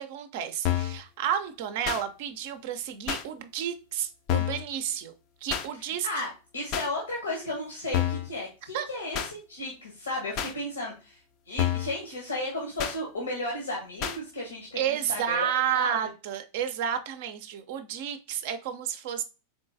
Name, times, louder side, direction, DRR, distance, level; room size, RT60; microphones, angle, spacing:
voice 1, 0.0-5.1 5.4-6.1 8.7-8.9 14.8-19.2, right 9 dB, 50° right, 9 dB, 0.5 m, -31 dB
sound 1, 0.6-1.0 1.8-2.0 3.1-3.2 4.3-4.6 5.5-5.7 6.7-6.9 7.9-8.3 9.1-9.3 10.4-10.5 11.6-11.9 12.8-13.0 14.0-14.2, left 11 dB, 40° left, 0.5 m, -28 dB
voice 2, 6.0-11.2 11.5-16.0, left 1 dB, 70° left, -1 dB, 1.1 m, -34 dB
3.7 x 3.6 x 2.6 m, 0.31 s
figure-of-eight pair, 90°, 0 cm